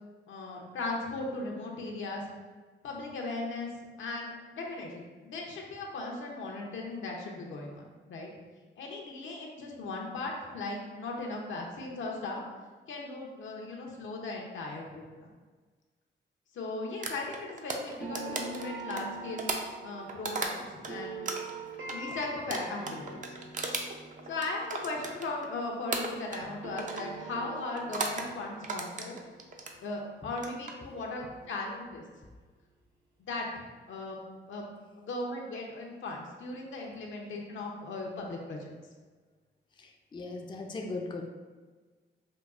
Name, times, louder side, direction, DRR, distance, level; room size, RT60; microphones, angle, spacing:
voice 1, 0.3-2.2 2.8-3.7 4.0-8.3 8.8-12.4 12.9-15.3 16.5-19.5 19.8-21.2 21.9-23.4 24.3-29.2 29.8-32.0 33.2-34.2 34.5-34.7 35.0-38.7, left 2 dB, 80° left, 0 dB, 0.7 m, -37 dB
sound 1, 17.0-20.9 21.3-25.5 25.9-26.5 26.8-27.1 27.8-28.3 28.6-29.8 30.3-30.7, right 3 dB, 40° right, 0.5 m, -36 dB
sound 2, 18.0-26.1 26.4-31.3, right 3 dB, 80° right, 0.7 m, -45 dB
voice 2, 39.8-41.2, left 3 dB, 25° left, 2 dB, 0.4 m, -38 dB
4.8 x 2.3 x 2.4 m, 1.4 s
cardioid pair, 80°, 20 cm